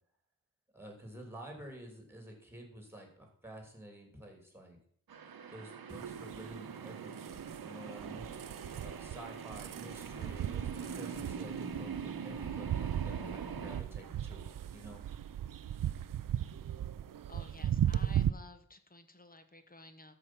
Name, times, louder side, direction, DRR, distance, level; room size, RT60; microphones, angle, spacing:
voice 1, 0.7-4.8 5.5-8.3 8.8-14.5 14.7-15.0, right 1 dB, 5° right, 2 dB, 2.6 m, -50 dB
sound 1, 5.1-13.8, right 6 dB, 80° right, 1.0 m, -43 dB
sound 2, 5.9-18.3, right 10 dB, 65° right, 0.5 m, -37 dB
voice 2, 17.3-20.2, left 2 dB, 25° left, 8 dB, 1.0 m, -54 dB
13.0 x 4.9 x 6.0 m, 0.64 s
wide cardioid pair, 120°, 35 cm